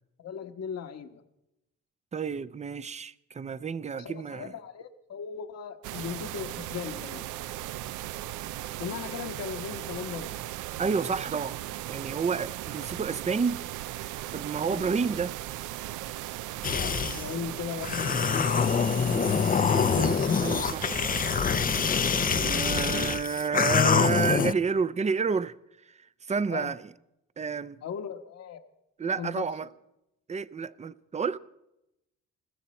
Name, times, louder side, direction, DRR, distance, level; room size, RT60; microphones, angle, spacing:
voice 1, 0.2-1.2 3.9-7.3 8.8-10.4 14.7-14.9 16.7-18.8 26.5-26.7 27.8-28.6 29.2-29.5, left 7 dB, 55° left, 1.2 m, -38 dB
voice 2, 2.1-4.5 10.8-11.6 11.9-13.6 14.3-15.3 19.1-21.1 22.2-25.5 25.9-26.9 27.4-27.8 29.0-29.7 30.3-31.4, right 5 dB, 25° right, 0.6 m, -30 dB
sound 1, 5.8-23.2, right 14 dB, 85° right, 0.5 m, -37 dB
sound 2, 16.6-17.3 17.8-24.5, left 7 dB, 30° left, 0.5 m, -25 dB
21.5 x 14.5 x 4.3 m
cardioid pair, 90°, 30 cm